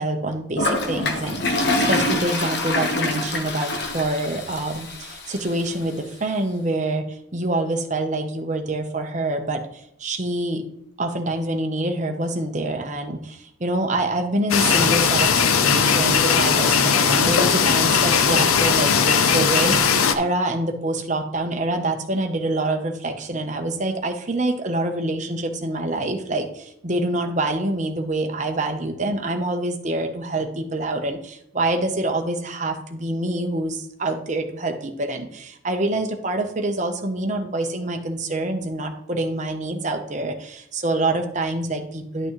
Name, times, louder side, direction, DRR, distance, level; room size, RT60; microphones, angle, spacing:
voice 1, 0.0-10.6 11.0-42.3, right 2 dB, 35° right, 4 dB, 0.9 m, -26 dB
Toilet flush, 0.6-5.6, left 2 dB, 50° left, 1.1 m, -25 dB
sound 1, 14.5-20.1, left 6 dB, 90° left, 0.7 m, -18 dB
11.0 x 6.1 x 3.1 m, 0.75 s
head